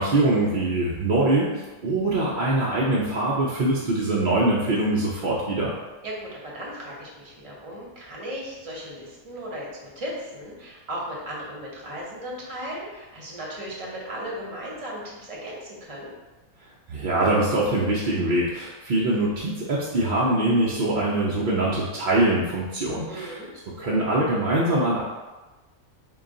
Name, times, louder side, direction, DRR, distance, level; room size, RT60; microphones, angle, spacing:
voice 1, 0.0-5.7 16.9-23.4 23.8-25.0, right 2 dB, 65° right, -6 dB, 0.5 m, -23 dB
voice 2, 6.0-16.1 23.1-23.5, equal, 30° right, -4 dB, 0.7 m, -36 dB
3.8 x 2.3 x 3.7 m, 1.2 s
omnidirectional pair, 1.5 m